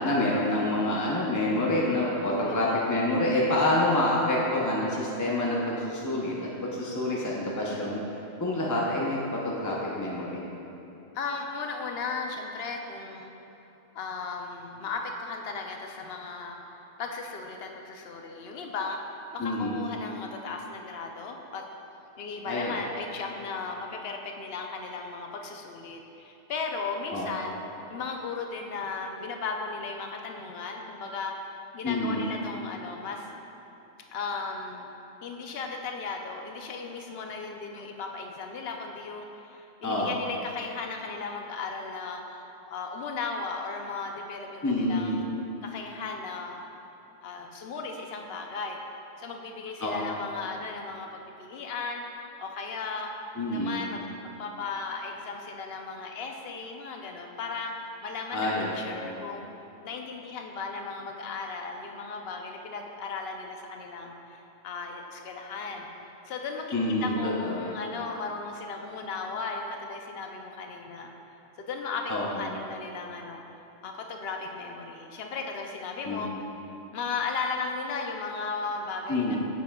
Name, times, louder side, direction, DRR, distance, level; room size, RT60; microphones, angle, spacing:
voice 1, 0.0-8.0 8.4-10.5 19.4-19.9 22.5-22.8 27.1-27.3 31.8-32.4 39.8-40.2 44.6-45.2 49.8-50.2 53.4-53.8 58.3-59.2 66.7-67.8 72.1-72.6 76.0-76.4 79.1-79.4, left 1 dB, 25° left, -5 dB, 0.4 m, -27 dB
voice 2, 2.5-2.9 11.1-13.3 13.9-21.7 22.2-27.6 27.9-33.3 34.1-34.9 35.2-45.3 45.6-46.6 47.2-48.8 49.2-52.0 52.4-53.1 53.5-59.5 59.8-65.9 66.2-66.7 67.0-71.1 71.6-73.4 73.8-76.3 76.9-79.4, left 4 dB, 60° left, 2 dB, 0.8 m, -36 dB
9.0 x 7.2 x 2.3 m, 2.9 s
omnidirectional pair, 1.3 m